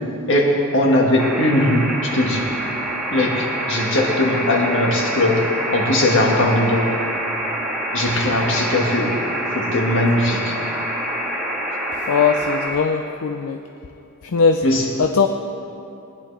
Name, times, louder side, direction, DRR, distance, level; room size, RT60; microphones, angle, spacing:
voice 1, 0.3-2.5 3.1-7.0 7.9-9.2 9.5-10.6 14.6-14.9, left 1 dB, 60° left, -1 dB, 1.8 m, -19 dB
sound 1, 1.2-12.7, right 1 dB, 5° right, 2.5 m, -26 dB
voice 2, 12.1-13.6 14.3-14.6 15.0-15.3, left 5 dB, 75° left, 7 dB, 0.5 m, -19 dB
19.5 x 10.5 x 3.4 m, 2.7 s
head